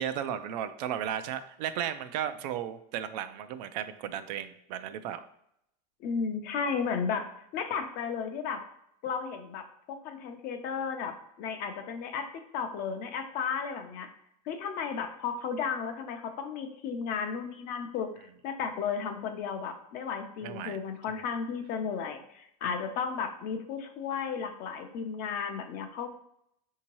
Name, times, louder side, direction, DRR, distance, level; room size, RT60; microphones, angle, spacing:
voice 1, 0.0-5.2 20.4-20.8 21.1-21.2, right 10 dB, 80° right, 11 dB, 0.4 m, -35 dB
voice 2, 6.0-8.6 9.0-14.1 14.5-26.1, left 6 dB, 45° left, 6 dB, 0.5 m, -34 dB
4.5 x 2.8 x 2.9 m, 0.75 s
supercardioid pair, 145°, 21 cm